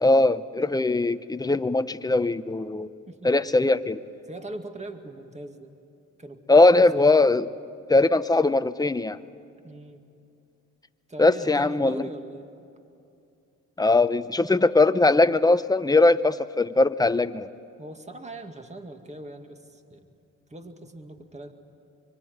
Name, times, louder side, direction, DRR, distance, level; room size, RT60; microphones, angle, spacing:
voice 1, 0.0-2.9 3.2-4.0 6.5-7.5 7.9-9.2 11.2-12.0 13.8-17.5, left 2 dB, 10° left, 11 dB, 0.8 m, -20 dB
voice 2, 4.2-5.7 6.2-7.2 9.6-10.0 11.1-12.5 17.8-20.1 20.5-21.5, right 2 dB, 20° right, 6 dB, 2.2 m, -41 dB
24.5 x 24.0 x 9.5 m, 2.5 s
cardioid pair, 70°, 32 cm